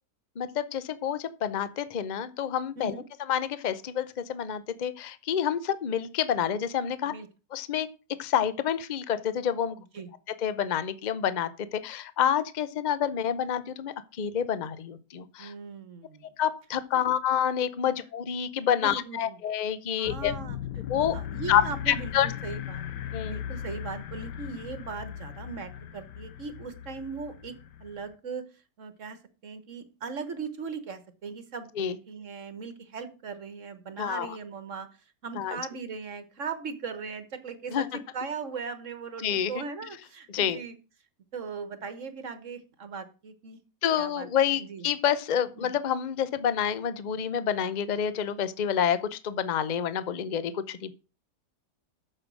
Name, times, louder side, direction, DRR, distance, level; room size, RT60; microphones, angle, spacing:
voice 1, 0.4-2.9 3.3-7.1 7.5-7.9 8.2-9.8 10.4-15.5 16.4-20.3 20.9-21.2 21.5-22.3 23.1-23.4 31.8-32.0 34.0-34.4 35.3-35.6 37.7-37.8 39.2-39.6 40.3-40.6 43.8-50.9, left 9 dB, 45° left, 14 dB, 0.5 m, -28 dB
voice 2, 15.4-16.3 16.9-17.1 18.8-19.4 19.9-20.6 21.1-22.8 23.3-28.5 28.8-34.9 35.2-40.7 41.3-43.6 44.0-44.9 45.6-45.7, right 5 dB, 50° right, 11 dB, 1.4 m, -39 dB
sound 1, 20.1-28.2, left 10 dB, 80° left, 1.4 m, -38 dB
8.8 x 6.7 x 6.2 m, 0.33 s
omnidirectional pair, 1.8 m